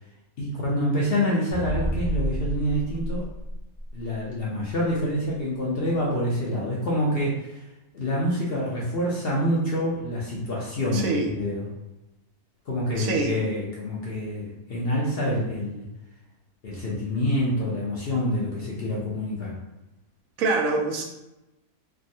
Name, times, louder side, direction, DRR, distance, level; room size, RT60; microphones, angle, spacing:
voice 1, 0.4-3.3 3.9-7.6 7.9-11.7 12.7-15.9 16.6-19.6, equal, 55° left, -4 dB, 0.7 m, -27 dB
sound 1, 1.5-4.2, equal, 35° right, 0.5 m, -30 dB
voice 2, 10.9-11.3 13.0-13.3 20.4-21.0, right 3 dB, 80° right, 1 dB, 1.0 m, -25 dB
3.4 x 2.1 x 2.6 m, 0.95 s
omnidirectional pair, 1.5 m